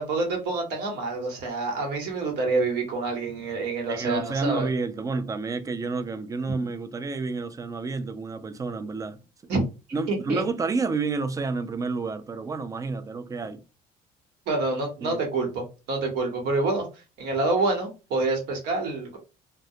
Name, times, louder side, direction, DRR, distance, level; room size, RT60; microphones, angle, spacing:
voice 1, 0.0-4.7 9.5-9.6 10.1-10.4 14.5-16.9 17.2-19.2, right 3 dB, 80° right, 1.0 m, -27 dB
voice 2, 3.9-9.5 9.9-13.6 15.0-15.2, right 4 dB, 20° right, 0.3 m, -30 dB
2.2 x 2.1 x 2.7 m
cardioid pair, 110°, 17 cm